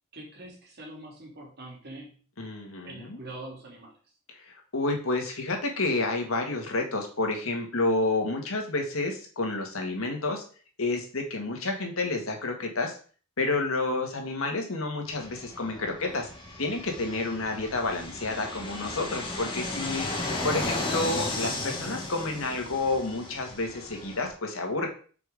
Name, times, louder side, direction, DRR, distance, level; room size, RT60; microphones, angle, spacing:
voice 1, 0.1-2.2 2.8-4.0, right 1 dB, 50° right, -1 dB, 2.8 m, -43 dB
voice 2, 2.4-3.2 4.4-10.4 10.8-13.0 13.4-16.3 16.6-24.9, left 2 dB, 80° left, 2 dB, 1.9 m, -30 dB
Fixed-wing aircraft airplane, 15.1-24.3, left 2 dB, 25° left, 1.7 m, -35 dB
6.1 x 4.9 x 5.1 m, 0.41 s
head